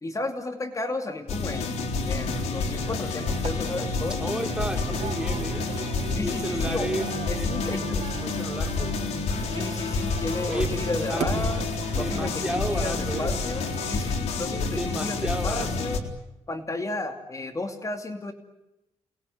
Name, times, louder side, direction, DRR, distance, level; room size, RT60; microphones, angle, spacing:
voice 1, 0.0-4.2 6.1-7.0 7.3-8.1 9.5-11.6 11.9-16.0 16.5-18.3, left 2 dB, 30° left, 6 dB, 2.7 m, -33 dB
sound 1, 1.3-16.0, left 4 dB, 80° left, 3.9 m, -29 dB
sound 2, 3.2-14.0, right 7 dB, 75° right, 3.9 m, -39 dB
voice 2, 4.2-5.7 6.2-9.0 10.5-11.3 12.0-13.3 14.6-15.7, right 1 dB, 10° right, 5 dB, 3.4 m, -33 dB
29.5 x 21.0 x 9.5 m, 0.95 s
cardioid pair, 90°, 11 cm